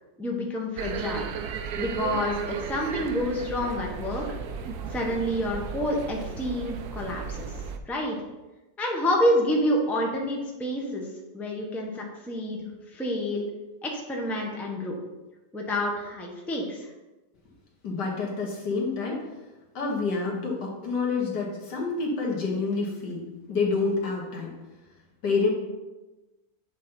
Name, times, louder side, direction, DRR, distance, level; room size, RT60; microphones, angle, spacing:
voice 1, 0.2-1.3 1.7-4.4 4.9-7.5 7.9-8.2 8.8-11.1 11.3-12.6 12.9-13.5 13.8-15.0 15.5-16.9, equal, ahead, -1 dB, 0.9 m, -28 dB
sound 1, 0.8-7.8, right 6 dB, 70° right, 1.1 m, -35 dB
voice 2, 17.8-19.3 19.7-23.2 23.5-24.5 25.2-25.5, left 4 dB, 70° left, -1 dB, 2.2 m, -28 dB
8.5 x 4.1 x 5.7 m, 1.1 s
omnidirectional pair, 1.9 m